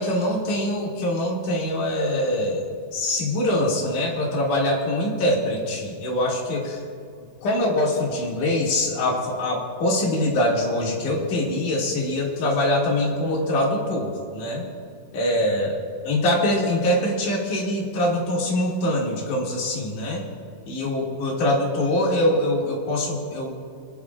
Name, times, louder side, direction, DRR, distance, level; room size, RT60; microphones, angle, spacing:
voice 1, 0.0-6.8 7.4-14.7 15.1-20.2 20.7-23.5, left 1 dB, 60° left, -3 dB, 3.6 m, -24 dB
28.5 x 10.0 x 2.4 m, 2.4 s
omnidirectional pair, 4.1 m